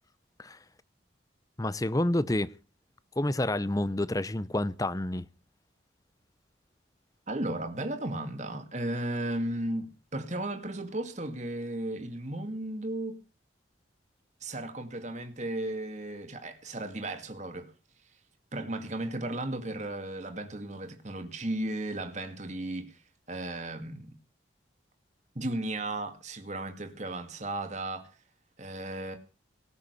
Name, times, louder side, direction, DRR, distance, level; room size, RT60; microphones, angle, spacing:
voice 1, 1.6-2.5 3.2-5.3, left 1 dB, 20° left, 0.7 m, -29 dB
voice 2, 7.3-13.2 14.4-17.7 18.5-23.0 23.3-24.2 25.4-28.1 28.6-29.2, right 1 dB, 40° right, 2.2 m, -35 dB
18.5 x 6.9 x 8.3 m
head